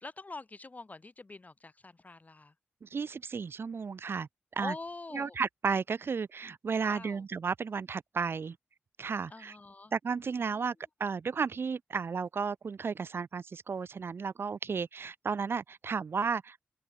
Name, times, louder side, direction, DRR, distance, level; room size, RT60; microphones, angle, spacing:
voice 1, 0.0-2.5 4.6-5.4 6.8-7.2 9.3-9.9 10.5-10.6, left 3 dB, 35° left, 7.3 m, -44 dB
voice 2, 2.8-4.3 4.6-4.7 5.1-8.6 9.0-9.6 9.9-10.7 11.0-16.6, right 5 dB, 60° right, 0.7 m, -33 dB
open air
cardioid pair, 55°, 4 cm